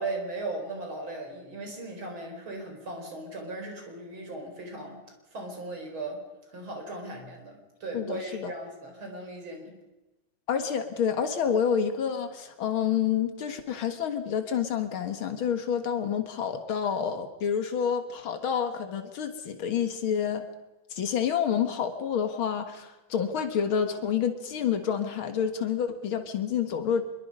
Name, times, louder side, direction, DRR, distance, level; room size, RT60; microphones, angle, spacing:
voice 1, 0.0-5.0 5.3-9.8, right 2 dB, 80° right, 3 dB, 5.3 m, -37 dB
voice 2, 7.9-8.5 10.5-20.5 20.9-27.0, left 8 dB, 85° left, 7 dB, 2.4 m, -28 dB
25.5 x 22.5 x 5.5 m, 1.0 s
omnidirectional pair, 2.2 m